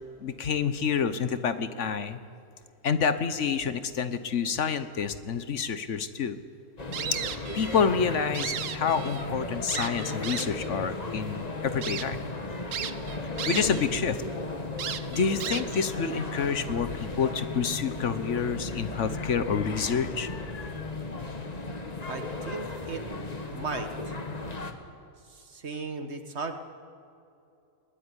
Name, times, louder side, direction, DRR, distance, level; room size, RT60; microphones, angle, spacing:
voice 1, 0.2-2.2 2.8-6.4 7.5-12.2 13.5-14.2 15.1-20.9, left 6 dB, 65° left, 11 dB, 1.3 m, -28 dB
sound 1, 6.8-24.7, left 2 dB, 30° left, 1.6 m, -35 dB
sound 2, 6.9-7.9 8.2-9.3 9.7-10.7 11.3-11.4 11.8-12.1 12.7-13.9 14.2-14.3 14.8-15.9, right 8 dB, 75° right, 1.3 m, -35 dB
voice 2, 22.1-23.0 23.5-24.5 25.2-26.5, right 4 dB, 55° right, 7 dB, 1.9 m, -37 dB
21.5 x 19.0 x 9.9 m, 2.7 s
omnidirectional pair, 1.4 m